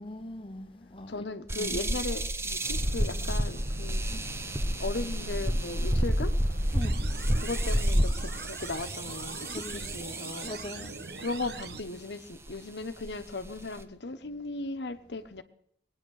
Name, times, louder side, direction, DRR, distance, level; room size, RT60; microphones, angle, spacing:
voice 1, 0.0-1.3 1.6-1.8 4.4-4.5 6.7-7.1 9.4-9.8 10.4-11.0, left 1 dB, 30° left, 1.1 m, -41 dB
voice 2, 1.1-4.0 4.8-6.3 7.4-10.5 11.2-15.4, left 3 dB, 80° left, 1.1 m, -37 dB
sound 1, 1.5-10.7 11.4-11.8 12.5-12.6 13.0-13.8, equal, 15° right, 0.8 m, -30 dB
sound 2, 2.6-7.9, right 2 dB, 50° right, 0.6 m, -46 dB
sound 3, 6.8-11.8, right 4 dB, 65° right, 1.1 m, -42 dB
21.0 x 9.5 x 6.5 m
head